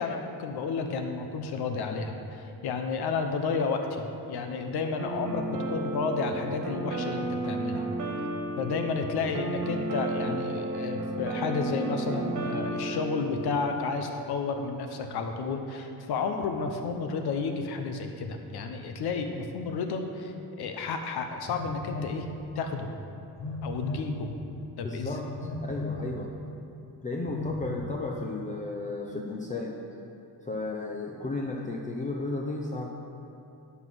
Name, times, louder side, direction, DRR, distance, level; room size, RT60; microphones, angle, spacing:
voice 1, 0.0-7.9 8.6-22.3 22.5-22.9 23.6-24.3 24.8-25.2, left 4 dB, 80° left, 5 dB, 0.9 m, -31 dB
sound 1, 5.0-13.7, right 2 dB, 50° right, 1.6 m, -33 dB
Telephone, 21.5-22.2 23.4-24.1 25.4-26.1 27.3-27.8, left 3 dB, 45° left, 1.3 m, -35 dB
voice 2, 24.8-26.3 27.0-29.8 30.4-32.9, left 2 dB, 20° left, 0 dB, 0.6 m, -34 dB
11.5 x 5.8 x 6.2 m, 2.8 s
cardioid pair, 145°, 38 cm